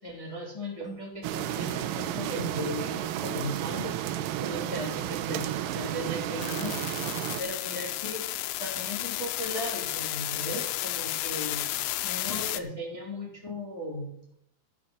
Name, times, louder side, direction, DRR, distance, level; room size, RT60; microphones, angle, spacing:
voice 1, 0.0-3.9 4.4-6.8 7.4-8.2 8.6-11.7 12.0-14.3, left 1 dB, 10° left, -4 dB, 3.1 m, -37 dB
sound 1, 0.8-4.0, right 5 dB, 45° right, 1.8 m, -49 dB
sound 2, 1.2-7.4, right 12 dB, 90° right, 2.8 m, -32 dB
sound 3, 6.4-12.6, left 16 dB, 85° left, 2.6 m, -33 dB
14.5 x 5.9 x 6.4 m, 0.73 s
omnidirectional pair, 4.6 m